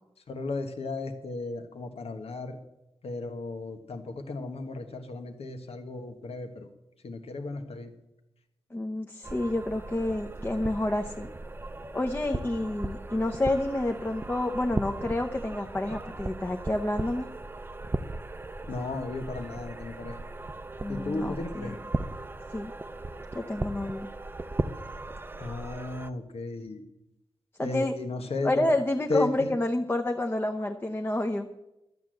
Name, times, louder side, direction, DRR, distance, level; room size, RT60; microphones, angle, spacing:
voice 1, 0.3-2.6 3.0-6.7 7.0-7.9 18.7-20.2 20.9-21.8 25.4-26.8 27.6-28.5 29.1-29.5, left 3 dB, 90° left, 7 dB, 1.4 m, -35 dB
voice 2, 8.7-11.3 11.9-17.3 20.8-21.7 22.5-22.7 23.3-24.1 27.6-27.9 28.4-31.5, left 1 dB, 20° left, 3 dB, 0.7 m, -29 dB
sound 1, 9.2-26.1, right 2 dB, 20° right, 0.5 m, -37 dB
12.0 x 8.3 x 7.7 m, 0.93 s
wide cardioid pair, 120°, 10 cm